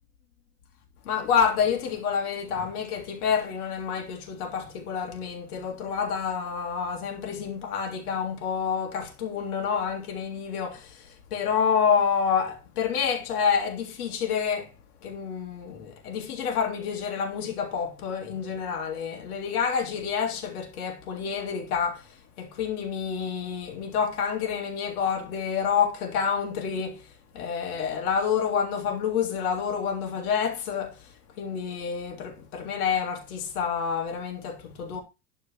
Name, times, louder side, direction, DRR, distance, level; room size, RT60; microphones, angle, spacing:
voice 1, 1.0-14.7 15.0-27.1 27.3-31.1 31.4-35.0, left 7 dB, 65° left, 2.8 m, -28 dB
11.5 x 4.7 x 6.4 m
figure-of-eight pair, 80°, 48 cm